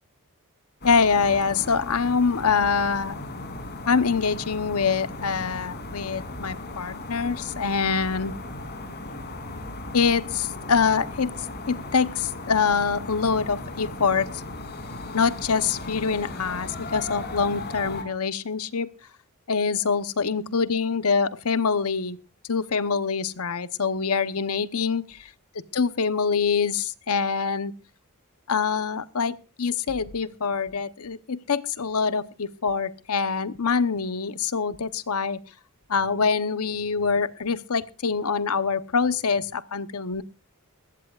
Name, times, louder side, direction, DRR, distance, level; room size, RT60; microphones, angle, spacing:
voice 1, 0.8-3.1 3.9-8.3 9.9-11.3 11.7-14.4 15.1-18.9 19.5-22.2 22.5-25.0 25.7-27.7 28.5-35.4 35.9-40.2, left 5 dB, 75° left, 0.9 m, -25 dB
sound 1, 0.8-18.0, left 2 dB, 50° left, 3.1 m, -37 dB
20.5 x 16.5 x 2.4 m
head